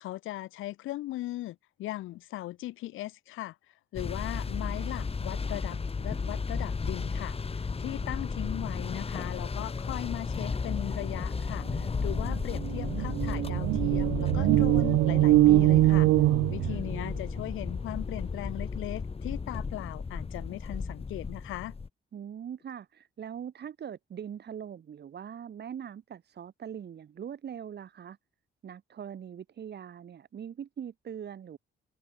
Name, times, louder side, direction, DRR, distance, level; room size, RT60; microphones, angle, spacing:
voice 1, 0.0-3.5 3.9-7.3 7.8-16.1 16.5-21.7, left 16 dB, 90° left, 2.9 m, -38 dB
sound 1, 3.9-21.9, left 4 dB, 30° left, 2.1 m, -34 dB
sound 2, 11.7-11.8 12.1-17.2, right 17 dB, 80° right, 0.4 m, -23 dB
voice 2, 22.1-28.2 28.6-31.6, right 8 dB, 55° right, 5.5 m, -42 dB
cardioid pair, 90°, 20 cm